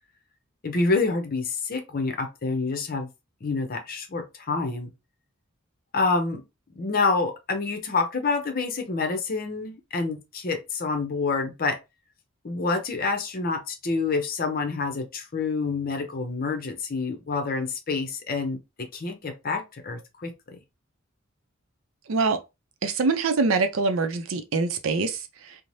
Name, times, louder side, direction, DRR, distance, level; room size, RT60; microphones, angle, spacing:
voice 1, 0.6-3.1 3.4-4.9 5.9-6.4 6.7-11.8 12.4-20.6, left 3 dB, 45° left, 0.6 m, -27 dB
voice 2, 22.1-22.4 22.8-25.6, right 4 dB, 80° right, 0.5 m, -24 dB
2.6 x 2.0 x 3.1 m
head